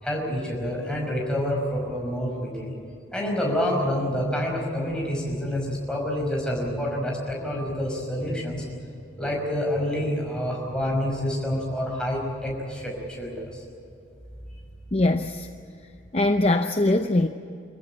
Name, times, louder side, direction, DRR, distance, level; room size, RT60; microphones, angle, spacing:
voice 1, 0.0-2.7 3.1-8.6 9.2-13.6, equal, 5° left, -2 dB, 5.4 m, -28 dB
voice 2, 14.9-15.5 16.1-17.3, left 2 dB, 30° left, 6 dB, 0.6 m, -22 dB
26.5 x 15.0 x 10.0 m, 2.6 s
head